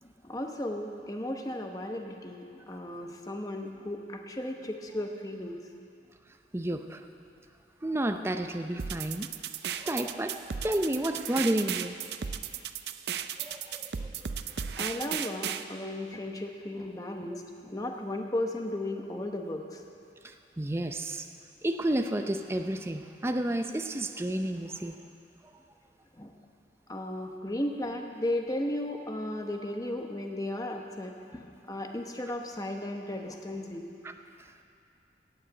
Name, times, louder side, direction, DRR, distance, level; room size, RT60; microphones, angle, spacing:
voice 1, 0.0-5.6 14.8-19.8 26.2-26.3 26.9-34.0, left 1 dB, 20° left, 3 dB, 0.9 m, -35 dB
voice 2, 6.5-7.0 7.8-9.3 9.8-11.9 13.4-14.1 20.2-21.2 21.6-25.0 34.0-34.1, right 1 dB, 15° right, 7 dB, 0.5 m, -31 dB
sound 1, 8.8-15.6, right 8 dB, 65° right, 0.5 m, -35 dB
16.5 x 6.5 x 8.1 m, 2.6 s
head